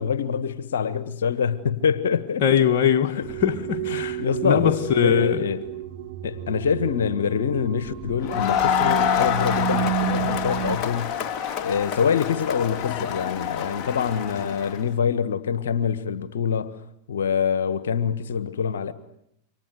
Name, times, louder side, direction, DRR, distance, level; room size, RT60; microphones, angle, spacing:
voice 1, 0.0-2.4 3.2-3.3 3.9-5.7 6.2-11.1 11.6-16.7 17.1-18.9, left 7 dB, 70° left, 1.5 m, -25 dB
voice 2, 2.4-5.4, left 9 dB, 50° left, 2.0 m, -22 dB
sound 1, 3.2-10.8, right 12 dB, 55° right, 2.7 m, -31 dB
Crowd, 8.2-14.8, left 9 dB, 35° left, 3.4 m, -26 dB
28.0 x 25.0 x 7.9 m
figure-of-eight pair, 90°, 0 cm